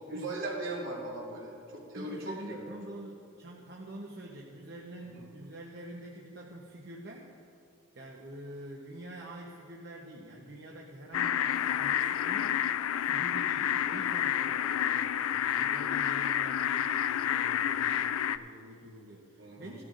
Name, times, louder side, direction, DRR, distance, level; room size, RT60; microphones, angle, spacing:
voice 1, 0.1-2.6 5.1-5.2 19.4-19.7, right 2 dB, 70° right, -4 dB, 2.8 m, -38 dB
voice 2, 1.9-7.3 7.9-12.6 13.0-19.8, right 1 dB, 50° right, -2 dB, 0.9 m, -46 dB
sound 1, 11.1-18.4, left 10 dB, 90° left, 0.3 m, -29 dB
17.5 x 12.0 x 2.6 m, 2.5 s
head